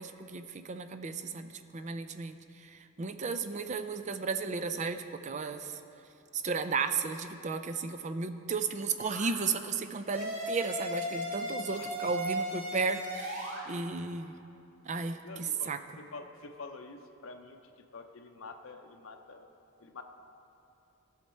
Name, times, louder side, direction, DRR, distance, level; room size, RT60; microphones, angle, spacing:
voice 1, 0.0-2.4 2.6-5.7 6.3-14.4 14.9-15.8, right 4 dB, 35° right, 9 dB, 0.4 m, -34 dB
sound 1, 9.0-9.3 10.1-13.6, equal, 65° right, 2.4 m, -36 dB
voice 2, 11.8-12.1 15.2-15.7 16.0-19.5 19.8-20.0, left 3 dB, 65° left, 5 dB, 0.6 m, -47 dB
14.5 x 6.5 x 4.3 m, 2.8 s
head